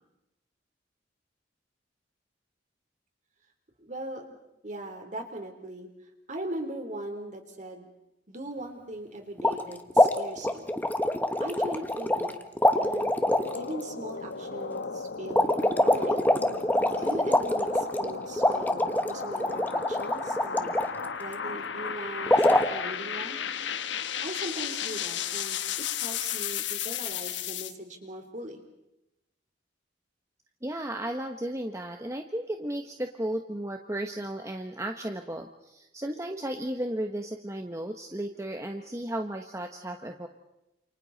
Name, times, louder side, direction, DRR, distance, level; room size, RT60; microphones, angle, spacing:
voice 1, 3.8-4.3 4.6-5.9 6.3-7.9 8.3-10.7 11.4-12.3 12.8-13.1 13.5-16.3 17.0-20.7 21.2-23.4 24.2-25.6 25.9-28.6, right 1 dB, 45° right, 4 dB, 3.8 m, -39 dB
sound 1, 9.4-9.6 9.9-12.3 12.6-13.6 15.3-20.9 22.3-22.7, left 1 dB, 10° left, 1.3 m, -24 dB
sound 2, 13.2-27.7, left 7 dB, 90° left, 1.1 m, -35 dB
voice 2, 30.6-40.3, right 1 dB, 15° right, 4 dB, 1.2 m, -34 dB
29.5 x 28.5 x 4.2 m, 0.90 s
head